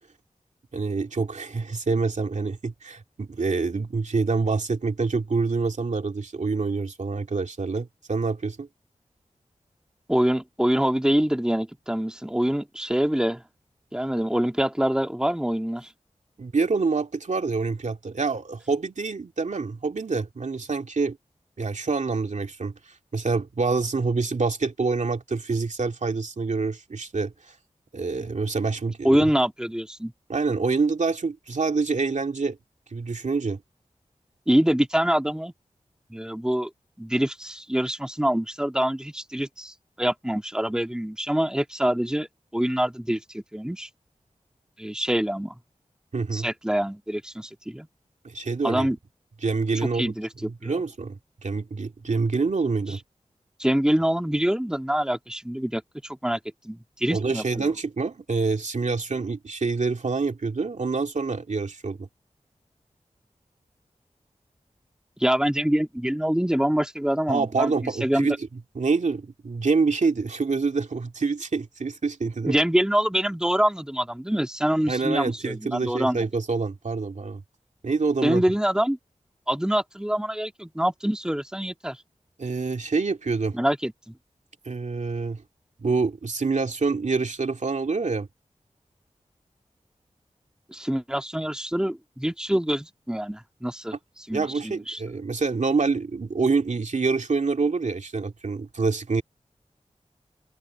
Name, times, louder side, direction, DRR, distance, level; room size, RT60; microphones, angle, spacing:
voice 1, 0.7-8.7 16.4-21.2 21.6-27.5 27.9-29.3 30.3-32.6 32.9-33.6 46.1-46.5 48.2-48.9 49.4-50.1 50.4-53.0 57.1-62.1 67.3-68.5 68.7-72.5 74.9-77.4 77.8-78.4 82.4-83.6 84.7-85.4 85.8-88.3 94.3-99.2, right 4 dB, 70° right, 2.3 m, -26 dB
voice 2, 10.1-13.4 13.9-15.9 29.0-30.1 34.5-35.5 36.1-36.7 37.0-42.3 42.5-43.9 44.8-45.5 46.3-47.9 48.6-49.0 49.9-50.7 52.9-53.0 53.6-56.4 56.6-57.7 65.2-67.7 68.0-68.3 72.5-76.3 78.2-79.0 79.5-82.0 83.5-84.1 90.7-93.9 94.3-95.0, equal, 5° right, 2.0 m, -25 dB
open air
wide cardioid pair, 55°, 13 cm